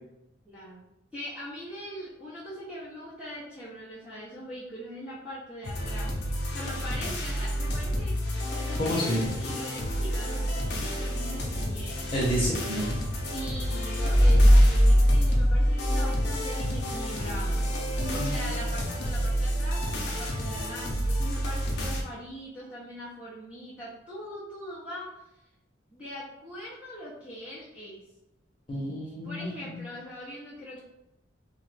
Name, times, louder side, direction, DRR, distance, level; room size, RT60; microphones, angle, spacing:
voice 1, 0.4-0.8 1.1-6.1 6.5-8.1 8.5-12.2 13.3-25.1 25.9-28.0 29.2-30.8, equal, 5° right, -9 dB, 0.6 m, -41 dB
sound 1, 5.6-22.0, equal, 55° left, 0.6 m, -31 dB
voice 2, 8.8-9.2 12.1-12.9 18.0-18.9 28.7-29.8, equal, 25° left, -5 dB, 0.9 m, -30 dB
sound 2, 14.0-17.3, equal, 50° right, 0.8 m, -20 dB
3.0 x 2.3 x 3.2 m, 0.91 s
head